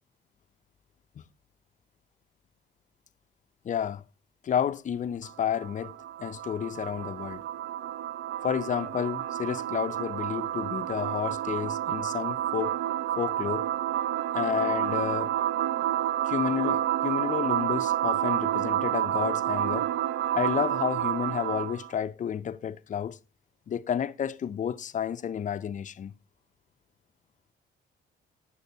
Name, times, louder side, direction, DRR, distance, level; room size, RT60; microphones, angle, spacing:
voice 1, 3.6-4.0 4.4-5.9 6.2-7.4 8.4-12.8 13.2-13.7 14.3-15.3 16.3-19.9 20.3-23.2 23.7-26.1, left 8 dB, 40° left, 0.4 m, -31 dB
sound 1, 5.2-21.9, right 12 dB, 70° right, 0.5 m, -29 dB
11.0 x 8.0 x 2.7 m
cardioid pair, 90°, 20 cm